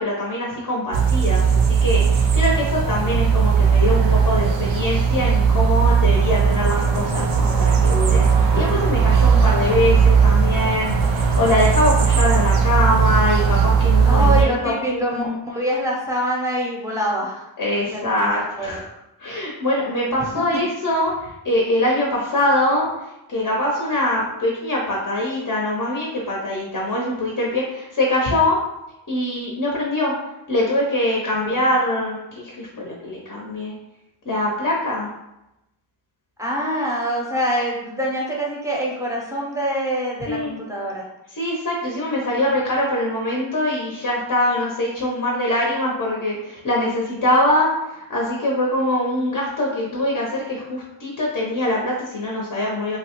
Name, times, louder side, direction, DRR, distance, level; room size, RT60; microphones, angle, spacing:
voice 1, 0.0-15.4 17.6-18.8 19.2-22.9 23.3-28.6 29.1-30.1 30.5-33.7 34.2-35.1 40.3-40.5 41.3-53.0, left 1 dB, 45° left, -3 dB, 0.7 m, -23 dB
sound 1, 0.9-14.5, right 6 dB, 80° right, 0.6 m, -17 dB
voice 2, 14.0-17.5 17.9-18.2 18.6-18.8 20.2-20.3 31.3-31.6 36.4-41.1, equal, 5° right, -4 dB, 0.6 m, -25 dB
2.9 x 2.1 x 2.9 m, 0.89 s
wide cardioid pair, 115°, 46 cm